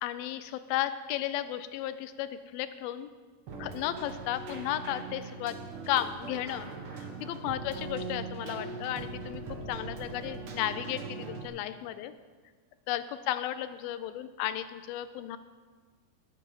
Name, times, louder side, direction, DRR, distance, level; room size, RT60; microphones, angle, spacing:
voice 1, 0.0-3.1 3.6-5.6 5.9-6.7 7.0-12.1 12.9-15.4, left 12 dB, 80° left, 12 dB, 2.3 m, -34 dB
Keyboard (musical), 3.5-11.5, right 3 dB, 65° right, 1.3 m, -41 dB
18.0 x 7.5 x 5.4 m, 1.5 s
omnidirectional pair, 4.4 m